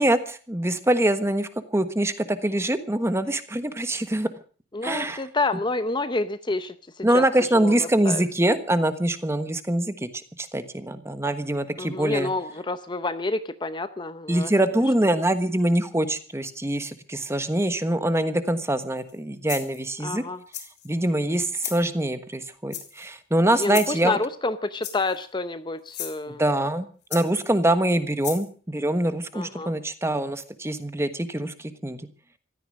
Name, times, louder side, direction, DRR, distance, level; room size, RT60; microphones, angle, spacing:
voice 1, 0.0-4.3 4.8-5.2 7.0-10.1 10.4-12.3 14.3-20.2 20.8-24.2 26.3-31.5 31.8-32.1, right 1 dB, 15° right, 11 dB, 1.3 m, -24 dB
voice 2, 4.7-6.7 7.1-7.2 7.5-8.2 11.8-14.5 20.0-20.4 23.6-26.4 29.3-29.7, left 3 dB, 25° left, 11 dB, 0.7 m, -28 dB
sound 1, 19.0-19.2 19.5-19.9 20.5-20.9 21.6-21.8 22.7-23.1 23.7-24.0 24.8-25.2 25.9-26.2 27.1-27.6 28.2-28.5, left 10 dB, 60° left, 3.9 m, -35 dB
16.0 x 13.5 x 6.4 m, 0.41 s
head